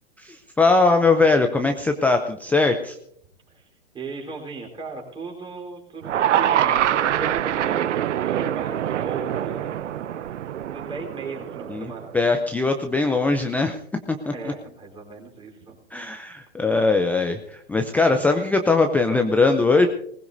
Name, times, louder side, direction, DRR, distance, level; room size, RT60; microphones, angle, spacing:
voice 1, 0.2-3.0 11.7-13.8 14.1-14.5 15.9-19.9, left 3 dB, 5° left, 5 dB, 0.5 m, -21 dB
voice 2, 3.9-10.4 10.7-12.1 13.5-13.6 14.3-16.4, right 3 dB, 15° right, -1 dB, 3.9 m, -37 dB
sound 1, 6.0-12.3, right 11 dB, 75° right, 0.8 m, -24 dB
20.0 x 19.5 x 2.7 m, 0.66 s
hypercardioid pair, 135°, 36 cm